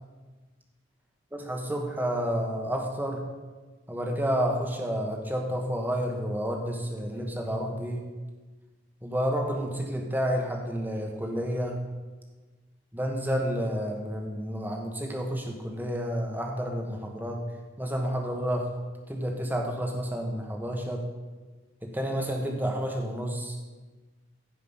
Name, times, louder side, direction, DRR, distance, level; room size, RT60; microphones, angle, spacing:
voice 1, 1.3-3.2 3.9-8.0 9.0-11.8 12.9-17.4 17.8-18.7 19.1-21.1 21.8-23.6, equal, 10° right, 1 dB, 1.3 m, -30 dB
15.5 x 5.2 x 5.5 m, 1.3 s
head